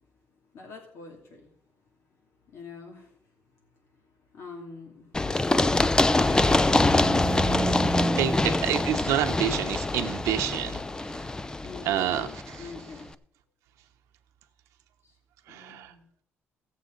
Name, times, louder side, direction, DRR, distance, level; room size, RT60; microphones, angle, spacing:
voice 1, 0.5-1.5 2.5-3.1 4.3-5.1 11.6-13.1 15.5-16.0, left 4 dB, 65° left, 1 dB, 2.6 m, -44 dB
Run, 5.1-12.8, left 2 dB, 15° left, 0.5 m, -25 dB
sound 1, 6.2-10.1, right 4 dB, 30° right, 0.7 m, -32 dB
voice 2, 8.1-11.2 11.8-12.7 15.5-15.9, right 11 dB, 90° right, 7 dB, 0.9 m, -29 dB
17.0 x 7.3 x 3.9 m, 0.67 s
cardioid pair, 90°, 5 cm